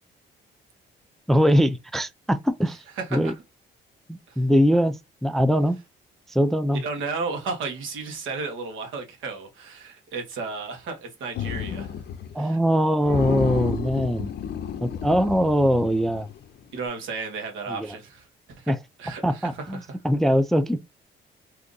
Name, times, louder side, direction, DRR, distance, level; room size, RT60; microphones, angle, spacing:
voice 1, 1.3-2.8 3.1-3.3 4.1-5.0 5.2-5.8 6.3-6.8 12.3-14.3 14.8-16.3 17.7-17.9 18.7-18.8 19.2-20.8, equal, ahead, 0.3 m, -22 dB
voice 2, 3.0-3.3 4.3-4.4 6.7-11.9 12.4-12.6 13.9-14.0 16.7-19.9, right 4 dB, 80° right, 1.2 m, -33 dB
sound 1, 11.4-12.4 12.6-12.7 13.0-16.4, left 8 dB, 55° left, 0.5 m, -31 dB
2.8 x 2.5 x 3.6 m
cardioid pair, 90°, 20 cm